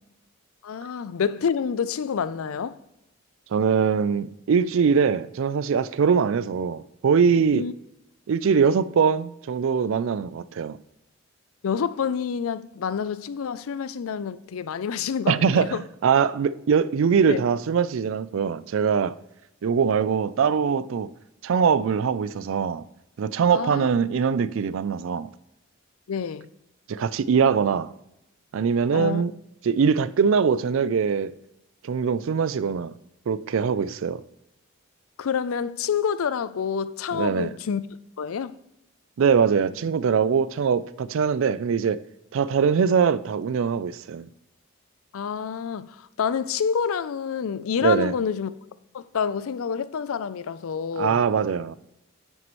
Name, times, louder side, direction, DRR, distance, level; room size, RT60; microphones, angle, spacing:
voice 1, 0.6-2.8 7.5-7.7 8.6-8.7 11.6-15.8 17.3-17.4 23.5-23.9 26.1-26.5 28.9-29.2 35.2-37.8 38.2-38.6 45.1-48.5 48.9-51.2, left 7 dB, 75° left, 0.4 m, -28 dB
voice 2, 3.5-7.7 8.3-10.8 15.3-19.2 19.6-21.1 21.4-22.8 23.2-25.3 26.9-27.9 28.5-29.3 29.6-31.3 31.8-32.9 33.3-34.2 37.1-37.5 39.2-42.0 42.3-44.3 47.8-48.1 51.0-51.8, right 6 dB, 65° right, 0.3 m, -22 dB
9.1 x 6.2 x 3.0 m
head